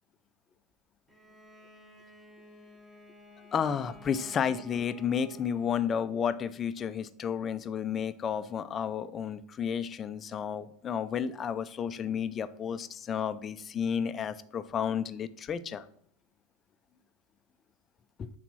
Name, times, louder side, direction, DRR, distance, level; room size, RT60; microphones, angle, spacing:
Bowed string instrument, 1.1-6.2, left 3 dB, 10° right, 1.0 m, -53 dB
voice 1, 3.5-15.8 18.2-18.3, left 7 dB, 20° left, 13 dB, 0.4 m, -32 dB
9.9 x 4.2 x 6.1 m, 0.65 s
supercardioid pair, 165°, 0 cm